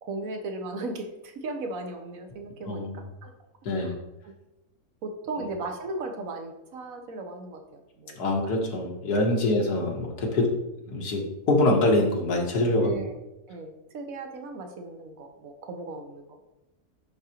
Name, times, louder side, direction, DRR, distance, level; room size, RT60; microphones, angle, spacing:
voice 1, 0.0-3.3 3.8-3.9 4.2-4.3 5.0-8.5 9.3-9.5 12.8-13.1 13.5-16.4, right 2 dB, 65° right, 5 dB, 1.2 m, -37 dB
voice 2, 2.7-3.1 3.7-4.0 5.4-5.5 8.2-10.5 10.9-12.9, left 2 dB, 85° left, 0 dB, 1.7 m, -24 dB
10.5 x 3.7 x 2.9 m, 0.96 s
omnidirectional pair, 1.6 m